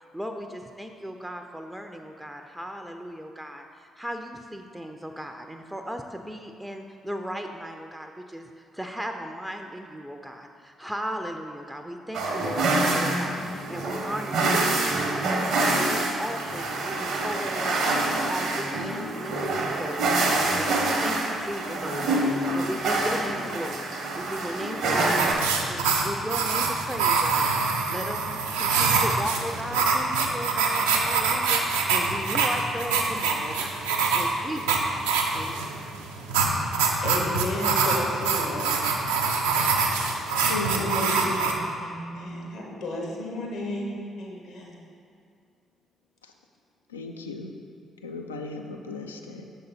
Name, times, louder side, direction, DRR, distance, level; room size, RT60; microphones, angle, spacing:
voice 1, 0.1-14.8 15.1-23.9 24.2-25.3 25.7-27.6 27.9-35.7, equal, 5° right, 4 dB, 0.4 m, -36 dB
sound 1, 12.1-25.3, right 2 dB, 65° right, 0.8 m, -26 dB
sound 2, 25.2-41.5, right 4 dB, 80° right, 0.4 m, -25 dB
voice 2, 37.0-38.7 40.6-44.7, left 1 dB, 65° left, -2 dB, 1.1 m, -33 dB
voice 3, 40.5-41.4 46.2-46.3 46.9-47.6 48.0-49.4, left 2 dB, 90° left, 3 dB, 0.3 m, -35 dB
6.5 x 3.9 x 4.1 m, 2.4 s
hypercardioid pair, 45°, 0 cm